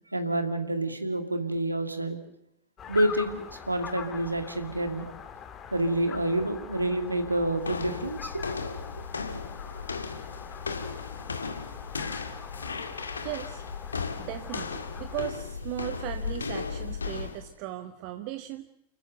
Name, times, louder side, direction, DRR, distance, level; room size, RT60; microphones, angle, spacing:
voice 1, 0.1-2.2 2.9-5.1 5.7-8.6 9.1-9.2, right 1 dB, 85° right, 7 dB, 2.3 m, -28 dB
sound 1, 2.8-15.3, left 7 dB, 25° left, 2.7 m, -43 dB
sound 2, 7.6-17.5, left 5 dB, 75° left, 2.2 m, -36 dB
voice 2, 13.2-13.6 14.2-18.7, right 14 dB, 45° right, 9 dB, 1.3 m, -37 dB
30.0 x 14.5 x 9.2 m, 0.80 s
figure-of-eight pair, 90°, 0 cm